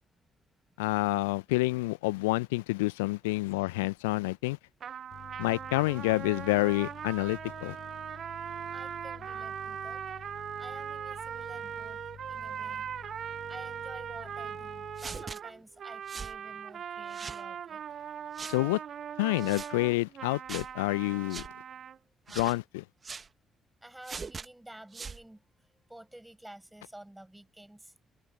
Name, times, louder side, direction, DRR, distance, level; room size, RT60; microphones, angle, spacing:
voice 1, 0.8-4.6 5.4-7.8 18.5-18.8 19.2-21.5 22.3-22.8, left 22 dB, 75° left, 0.9 m, -28 dB
sound 1, 4.8-22.0, right 8 dB, 50° right, 0.9 m, -40 dB
sound 2, 5.1-15.3, left 9 dB, 50° left, 1.9 m, -50 dB
voice 2, 8.7-10.0 10.6-12.0 12.3-17.8 21.8-22.0 23.8-27.9, right 1 dB, 10° right, 7.8 m, -51 dB
sound 3, 15.0-15.4 16.1-16.4 17.1-17.4 18.4-18.6 19.4-19.7 20.5-20.7 21.3-21.5 22.3-22.6 23.0-23.3 24.0-24.5 24.9-25.2, right 5 dB, 35° right, 1.4 m, -41 dB
open air
figure-of-eight pair, 40°, 0 cm